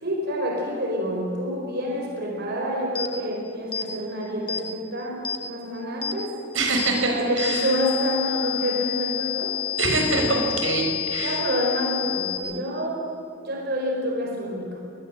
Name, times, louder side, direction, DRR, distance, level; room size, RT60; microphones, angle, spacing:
voice 1, 0.0-6.3 7.0-9.6 10.1-10.6 11.2-13.0 13.4-14.8, equal, 55° right, 0 dB, 4.6 m, -28 dB
sound 1, 2.9-3.1 3.7-3.9 4.5-4.6 5.2-5.4 6.0-6.2 6.8-6.9 7.4-12.4, left 11 dB, 25° left, 2.6 m, -29 dB
voice 2, 6.5-7.7 9.8-11.4, right 2 dB, 80° right, 2 dB, 5.5 m, -24 dB
24.5 x 20.0 x 7.8 m, 2.7 s
head